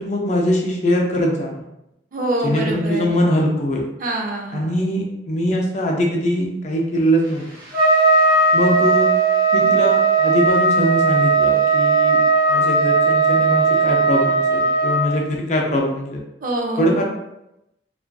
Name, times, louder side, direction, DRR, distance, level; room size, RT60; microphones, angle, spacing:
voice 1, 0.0-1.6 2.4-3.9 4.5-7.5 8.5-9.1 9.5-12.2 12.5-16.2 16.8-17.0, equal, 40° left, 0 dB, 0.4 m, -22 dB
voice 2, 2.1-3.2 4.0-4.9 16.4-17.0, right 1 dB, 45° right, 0 dB, 0.4 m, -25 dB
Trumpet, 7.7-15.1, right 3 dB, 20° right, 0.8 m, -17 dB
2.5 x 2.3 x 2.2 m, 0.88 s
head